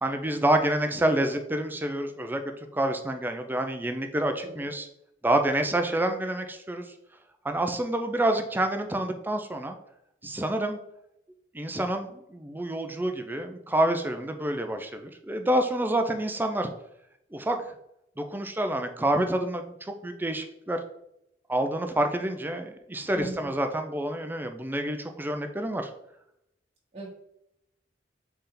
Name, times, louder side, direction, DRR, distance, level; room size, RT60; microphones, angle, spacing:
voice 1, 0.0-2.4 2.7-4.9 5.2-6.8 7.4-9.8 10.2-10.8 11.5-16.7 17.3-17.6 18.2-19.7 20.0-20.8 21.5-25.9, right 1 dB, 10° right, 6 dB, 0.4 m, -28 dB
voice 2, 23.1-23.5 26.9-27.1, right 2 dB, 35° right, -6 dB, 1.2 m, -39 dB
4.2 x 3.3 x 3.7 m, 0.79 s
head